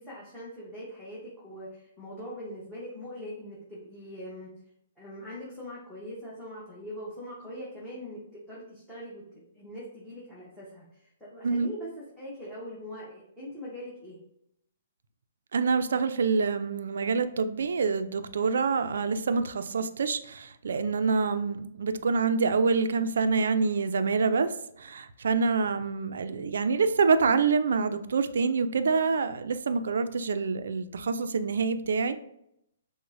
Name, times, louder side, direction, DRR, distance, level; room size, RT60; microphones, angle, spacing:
voice 1, 0.0-4.5 5.0-11.9 12.2-14.2, equal, 5° left, -9 dB, 0.9 m, -42 dB
voice 2, 15.5-24.5 24.8-32.2, right 4 dB, 75° right, 10 dB, 0.3 m, -26 dB
6.0 x 2.0 x 2.5 m, 0.78 s
hypercardioid pair, 160°, 0 cm